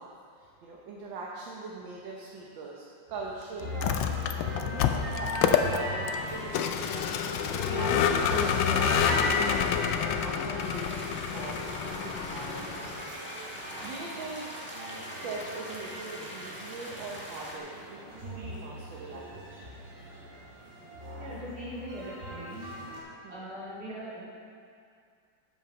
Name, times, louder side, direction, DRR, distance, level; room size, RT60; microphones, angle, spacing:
voice 1, 0.0-6.1 6.3-12.2 12.5-13.1 13.6-14.5 15.2-19.6 23.2-23.5, right 3 dB, 80° right, -3 dB, 1.6 m, -42 dB
sound 1, 3.6-23.0, left 1 dB, 40° right, 2.2 m, -38 dB
Vehicle, 3.7-13.0, left 8 dB, 80° left, 1.3 m, -28 dB
sound 2, 10.6-17.6, equal, 5° left, 1.0 m, -43 dB
voice 2, 21.2-22.7 23.3-24.2, equal, 55° right, -9 dB, 3.3 m, -41 dB
8.1 x 7.0 x 6.0 m, 2.4 s
omnidirectional pair, 2.1 m